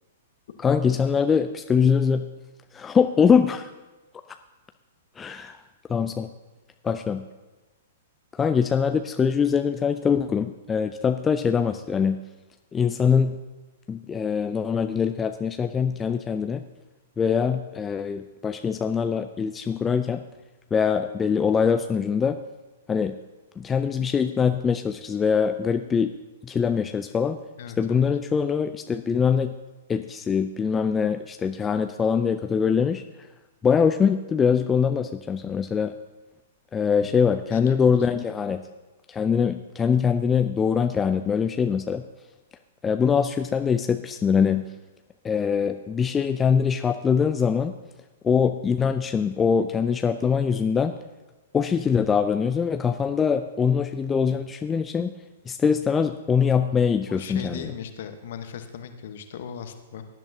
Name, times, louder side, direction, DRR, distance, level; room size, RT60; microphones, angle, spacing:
voice 1, 0.6-2.3 2.7-3.7 4.3-4.4 5.2-5.6 5.9-6.3 6.8-7.2 8.3-12.2 12.7-13.4 13.9-16.6 17.2-20.2 20.7-22.4 22.9-23.2 23.6-26.1 26.4-27.4 27.8-29.5 29.9-33.0 33.6-35.9 36.7-38.6 39.1-42.0 42.8-44.6 45.2-47.7 48.2-50.9 51.5-55.1 55.5-57.7, left 6 dB, 15° left, 8 dB, 0.4 m, -23 dB
voice 2, 27.6-28.0 37.0-37.2 37.5-38.3 57.1-60.1, left 7 dB, 50° left, 8 dB, 1.0 m, -38 dB
18.0 x 10.5 x 2.8 m, 1.1 s
figure-of-eight pair, 105°, 0 cm